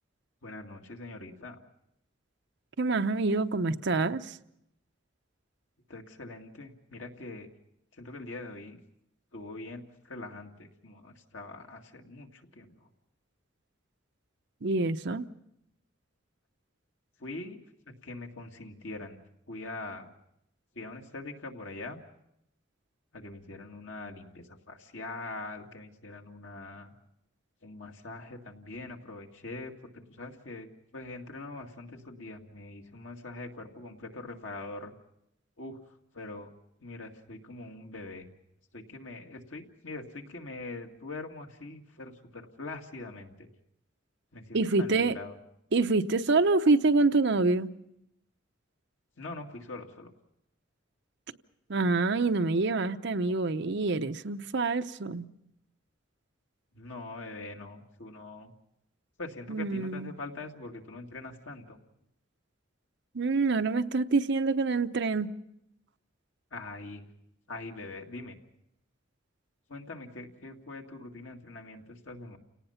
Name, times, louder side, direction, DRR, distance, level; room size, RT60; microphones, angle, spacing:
voice 1, 0.4-1.6 5.9-7.5 7.9-8.8 9.3-12.9 17.2-17.6 18.0-19.2 19.5-20.1 20.7-22.0 23.1-26.9 27.6-34.9 35.6-35.8 36.1-36.5 36.8-38.3 38.7-43.5 44.3-45.4 49.2-50.1 56.7-58.5 59.2-61.8 66.5-67.0 67.5-68.4 69.7-72.4, left 2 dB, 90° left, 2.2 m, -43 dB
voice 2, 2.8-4.4 14.6-15.3 44.5-45.2 45.7-47.7 51.7-55.3 59.5-60.1 63.1-65.3, right 3 dB, 60° right, 0.8 m, -26 dB
30.0 x 18.0 x 5.7 m
head